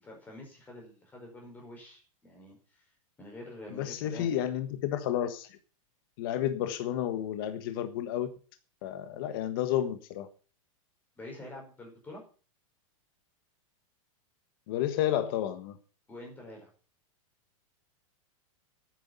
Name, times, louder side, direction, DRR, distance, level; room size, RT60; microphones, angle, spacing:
voice 1, 0.0-2.8 3.2-4.3 11.2-12.2 16.1-16.7, left 1 dB, 10° left, 5.1 m, -47 dB
voice 2, 3.7-5.5 6.2-8.3 8.8-10.3 14.7-15.8, left 11 dB, 40° left, 1.4 m, -31 dB
10.0 x 9.5 x 8.2 m
supercardioid pair, 170°, 17 cm